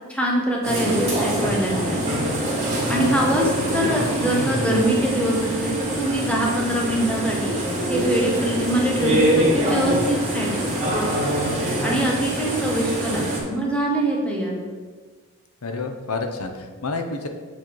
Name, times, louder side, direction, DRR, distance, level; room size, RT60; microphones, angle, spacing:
voice 1, 0.1-2.0 2.9-5.7 6.0-7.5 7.9-10.7 11.8-14.6, right 1 dB, 5° left, -2 dB, 1.2 m, -23 dB
sound 1, 0.6-13.4, right 1 dB, 30° right, 2.2 m, -24 dB
voice 2, 15.6-17.3, left 3 dB, 70° left, 5 dB, 0.8 m, -29 dB
7.2 x 4.2 x 4.6 m, 1.5 s
head